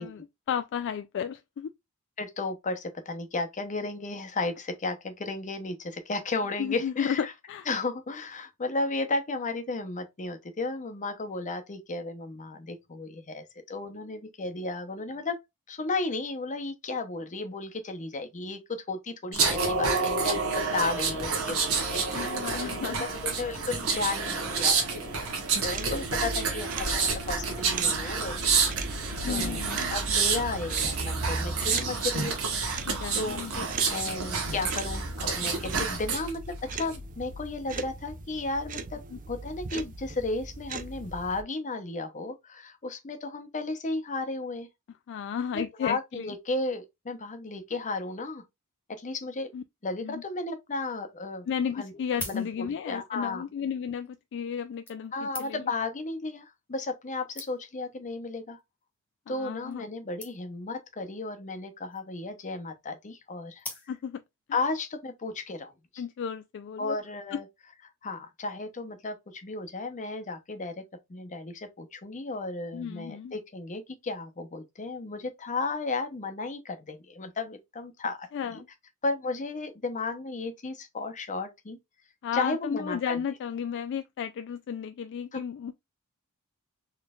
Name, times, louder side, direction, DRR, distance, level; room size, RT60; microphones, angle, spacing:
voice 1, 0.0-1.7 6.6-7.7 22.1-23.1 29.2-29.9 32.9-33.7 39.1-39.2 45.1-46.3 49.5-49.6 50.0-50.2 51.5-55.6 59.3-59.8 63.9-64.2 66.0-67.0 67.3-67.4 72.7-73.3 78.3-78.7 82.2-85.7, left 7 dB, 55° left, 0.3 m, -33 dB
voice 2, 2.2-7.3 7.7-15.4 15.7-25.3 25.6-28.5 29.2-32.4 33.1-39.0 39.3-44.7 45.5-48.4 49.0-49.5 49.8-51.5 51.7-51.9 52.3-53.4 55.1-58.6 59.3-63.6 64.5-66.0 66.8-67.5 68.0-70.8 71.1-78.6 79.0-81.8 82.3-83.2 85.3-85.4, left 3 dB, 35° left, 0.8 m, -34 dB
sound 1, 19.3-36.3 36.7-37.0, right 4 dB, 70° right, 1.2 m, -29 dB
sound 2, 25.6-41.4, right 3 dB, 35° right, 0.5 m, -38 dB
sound 3, 51.9-53.0 53.9-54.1 54.9-55.8 56.7-56.8 57.0-57.1 57.3-57.9 58.6-58.8 59.1-59.2 59.4-59.5 59.7-59.8 60.2-60.7 61.7-62.2 63.6-64.3 64.8-64.9, left 2 dB, 10° left, 1.2 m, -43 dB
4.1 x 3.1 x 2.3 m
head